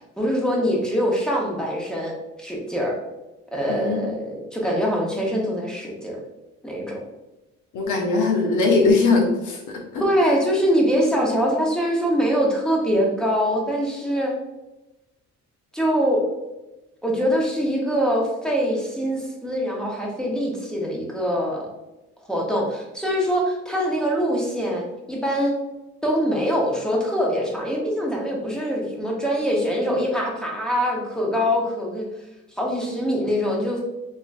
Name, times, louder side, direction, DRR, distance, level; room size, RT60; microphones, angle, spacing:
voice 1, 0.2-3.0 3.5-6.2 6.6-7.0 10.0-14.4 15.7-16.2 17.0-21.7 22.3-25.6 26.0-32.1 32.5-33.8, equal, ahead, -2 dB, 1.0 m, -23 dB
voice 2, 3.7-4.0 7.7-10.3, left 3 dB, 80° left, 1 dB, 1.0 m, -21 dB
3.7 x 2.9 x 2.6 m, 1.0 s
cardioid pair, 90°, 30 cm